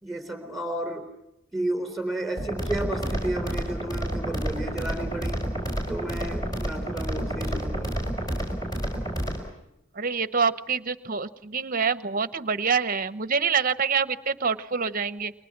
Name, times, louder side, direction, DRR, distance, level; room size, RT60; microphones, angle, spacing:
voice 1, 0.0-1.1 1.5-5.5 5.9-8.0, right 1 dB, ahead, 6 dB, 3.8 m, -32 dB
sound 1, 2.4-9.4, right 1 dB, 15° left, 5.2 m, -30 dB
voice 2, 10.0-15.3, right 5 dB, 40° right, 14 dB, 0.8 m, -26 dB
29.5 x 24.0 x 6.0 m, 0.86 s
head